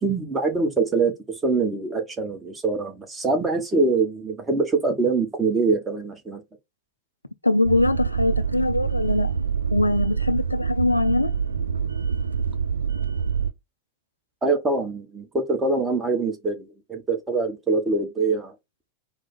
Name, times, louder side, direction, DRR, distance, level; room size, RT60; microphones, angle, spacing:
voice 1, 0.0-6.4 14.4-18.5, right 3 dB, 15° right, 1.1 m, -24 dB
voice 2, 7.4-9.3 9.7-11.3, left 2 dB, 85° left, 0.4 m, -22 dB
sound 1, 7.6-13.5, right 6 dB, 75° right, 0.3 m, -26 dB
4.7 x 2.1 x 4.4 m
figure-of-eight pair, 90°, 0 cm